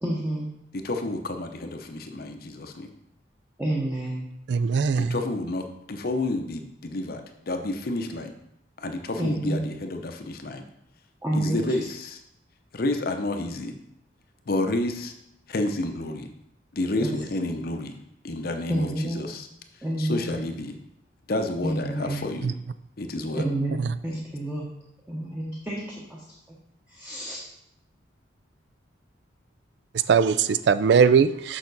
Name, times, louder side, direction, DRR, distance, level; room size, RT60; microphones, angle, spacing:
voice 1, 0.0-0.5 3.6-4.3 9.1-9.7 11.2-11.8 17.0-17.1 18.7-19.4 19.8-20.4 21.6-22.2 23.4-24.6 25.1-26.2 26.9-27.4, right 1 dB, 10° right, -4 dB, 0.9 m, -29 dB
voice 2, 0.7-2.9 5.0-8.3 8.8-10.6 11.3-12.2 12.7-13.7 14.5-15.1 15.5-16.3 16.7-18.0 18.2-19.5 20.0-20.7 21.3-22.5 23.0-23.4, left 2 dB, 50° left, 6 dB, 0.7 m, -30 dB
voice 3, 4.5-5.1 30.1-31.6, right 6 dB, 65° right, 14 dB, 0.3 m, -20 dB
6.5 x 5.8 x 4.0 m, 0.77 s
head